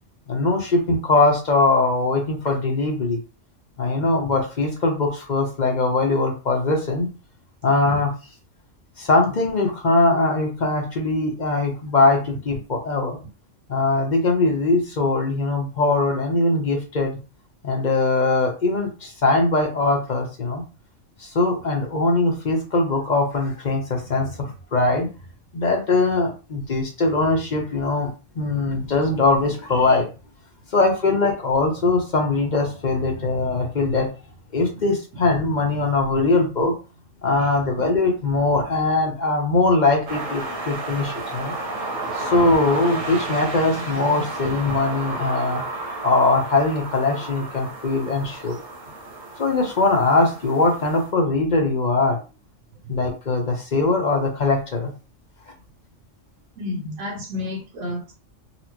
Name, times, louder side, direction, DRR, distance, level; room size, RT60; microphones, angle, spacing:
voice 1, 0.3-3.2 3.8-7.1 7.6-8.1 9.0-13.2 13.7-17.2 17.6-20.6 21.2-25.1 25.5-28.1 28.4-30.1 30.7-34.1 34.5-36.7 37.2-41.6 42.1-45.6 46.0-48.6 49.4-52.2 52.9-54.9, left 3 dB, 45° left, 2 dB, 0.7 m, -21 dB
sound 1, 40.1-51.1, right 2 dB, 85° right, 1.4 m, -32 dB
voice 2, 56.6-58.1, left 2 dB, 60° right, -1 dB, 0.8 m, -31 dB
4.2 x 2.0 x 2.9 m, 0.32 s
omnidirectional pair, 1.3 m